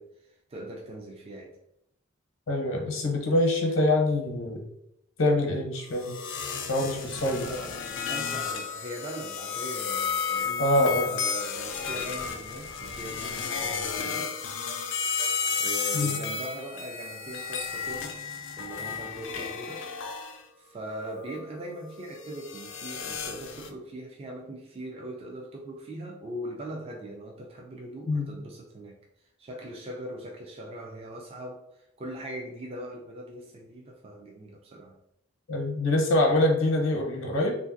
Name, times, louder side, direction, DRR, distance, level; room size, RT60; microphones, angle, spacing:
voice 1, 0.0-1.6 6.8-14.4 15.5-18.2 18.6-19.9 20.6-29.0 29.4-35.0, right 1 dB, 30° right, 0 dB, 0.3 m, -40 dB
voice 2, 2.5-4.6 5.2-6.2 6.7-7.5 10.6-11.1 15.9-16.2 28.1-28.3 35.5-37.6, left 1 dB, 85° left, 1 dB, 0.7 m, -25 dB
sound 1, 5.9-20.4 21.0-23.7, left 6 dB, 65° left, 0.4 m, -33 dB
3.1 x 2.5 x 2.5 m, 0.79 s
head